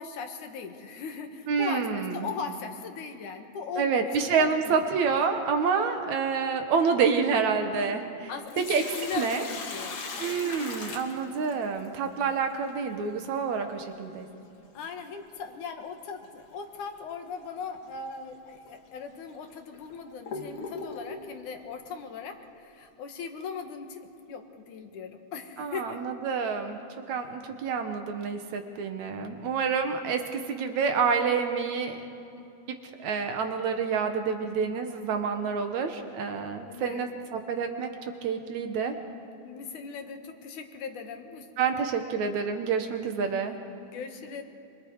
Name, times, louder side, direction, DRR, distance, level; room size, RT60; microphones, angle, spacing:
voice 1, 0.0-4.8 8.3-10.9 14.7-26.0 36.6-37.2 39.4-41.5 43.9-44.4, left 5 dB, 80° left, 5 dB, 3.0 m, -39 dB
voice 2, 1.5-2.3 3.8-8.3 8.7-8.8 9.2-9.4 10.2-14.3 25.6-26.8 27.1-32.0 32.7-37.9 38.2-38.9 41.6-43.6, right 5 dB, 75° right, 6 dB, 2.6 m, -28 dB
Sink (filling or washing), 8.3-11.9 14.3-14.4 16.2-16.5 16.9-17.0 17.8-18.0 18.7-18.8 19.4-21.3, left 4 dB, 50° left, 2.4 m, -39 dB
25.5 x 25.0 x 4.8 m, 2.8 s
omnidirectional pair, 3.5 m